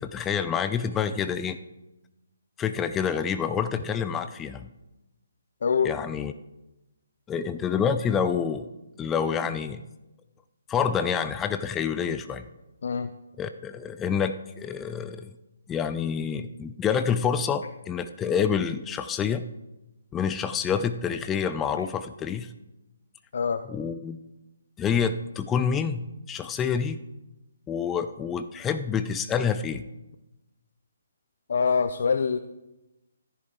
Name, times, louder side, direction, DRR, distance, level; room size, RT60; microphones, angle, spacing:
voice 1, 0.0-1.6 2.6-4.7 5.8-6.3 7.3-8.7 9.0-9.8 10.7-12.4 13.4-15.3 15.7-19.5 20.1-22.5 23.7-24.2 24.8-27.0 27.7-29.8, left 7 dB, 15° left, 10 dB, 0.5 m, -27 dB
voice 2, 5.6-5.9 12.8-13.1 23.3-23.7 31.5-32.4, left 5 dB, 55° left, 10 dB, 0.6 m, -24 dB
15.0 x 10.0 x 3.7 m, 0.98 s
figure-of-eight pair, 140°, 0 cm